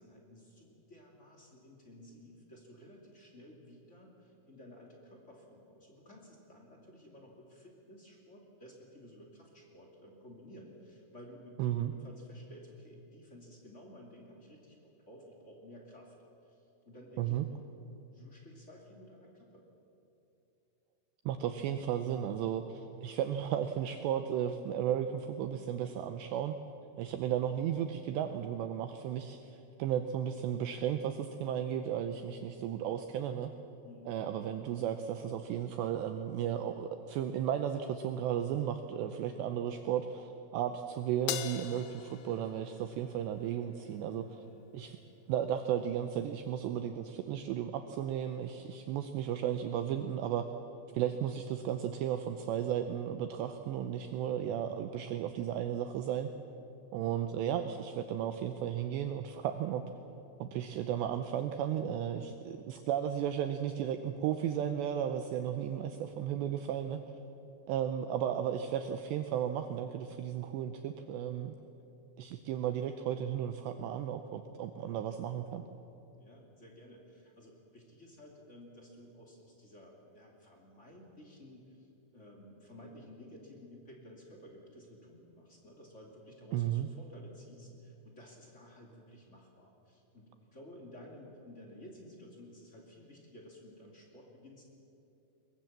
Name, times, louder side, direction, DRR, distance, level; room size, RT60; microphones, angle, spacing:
voice 1, 0.0-16.1 16.4-17.7 18.0-19.6 33.8-34.1 44.4-44.7 65.8-66.7 76.2-94.9, equal, 25° left, -1 dB, 1.6 m, -54 dB
voice 2, 11.6-11.9 17.2-17.5 21.3-26.6 27.0-29.5 29.8-33.5 34.1-44.3 44.7-45.0 45.3-50.5 50.9-56.3 56.9-59.8 60.4-67.0 67.7-71.5 72.2-75.7 86.5-86.9, right 10 dB, 85° right, 7 dB, 2.5 m, -34 dB
Crash cymbal, 41.3-43.8, left 11 dB, 80° left, 2.6 m, -41 dB
22.5 x 21.0 x 7.4 m, 2.8 s
omnidirectional pair, 5.9 m